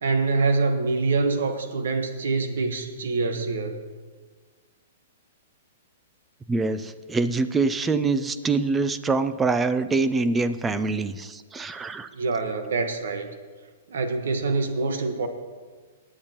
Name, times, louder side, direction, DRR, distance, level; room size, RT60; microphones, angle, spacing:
voice 1, 0.0-3.8 12.1-13.3 13.9-15.3, right 3 dB, 80° right, 7 dB, 1.2 m, -25 dB
voice 2, 6.5-12.1, right 3 dB, 10° right, 12 dB, 0.4 m, -25 dB
19.5 x 8.6 x 2.9 m, 1.4 s
hypercardioid pair, 165°, 0 cm